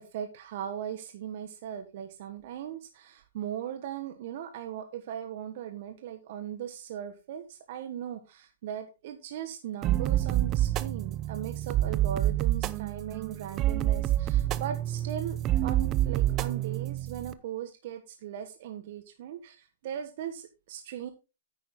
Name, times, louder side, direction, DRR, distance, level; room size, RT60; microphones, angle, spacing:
voice 1, 0.0-21.1, right 9 dB, 55° right, 7 dB, 1.3 m, -38 dB
sound 1, 9.8-17.3, right 13 dB, 30° right, 0.7 m, -28 dB
9.6 x 9.1 x 3.7 m, 0.28 s
hypercardioid pair, 125°, 0 cm